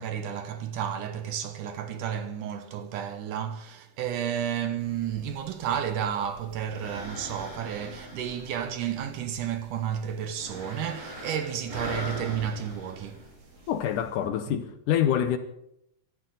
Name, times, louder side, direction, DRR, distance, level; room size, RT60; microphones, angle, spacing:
voice 1, 0.0-13.3, right 9 dB, 70° right, 2.2 m, -32 dB
sound 1, 4.8-14.1, equal, 20° right, 6.3 m, -42 dB
voice 2, 13.7-15.4, left 10 dB, 75° left, 2.1 m, -26 dB
24.5 x 12.5 x 4.0 m
omnidirectional pair, 4.2 m